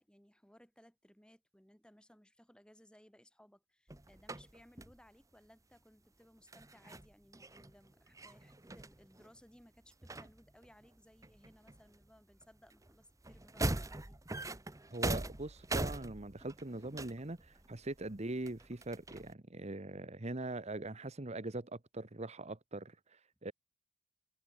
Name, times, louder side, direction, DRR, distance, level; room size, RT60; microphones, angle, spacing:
voice 1, 0.0-14.2, equal, 5° left, 4.1 m, -63 dB
sound 1, 3.9-5.0 6.5-9.6 9.9-10.9 11.2-12.1 12.3-19.3, right 2 dB, 15° right, 1.2 m, -41 dB
voice 2, 14.9-23.5, right 2 dB, 35° right, 1.3 m, -42 dB
head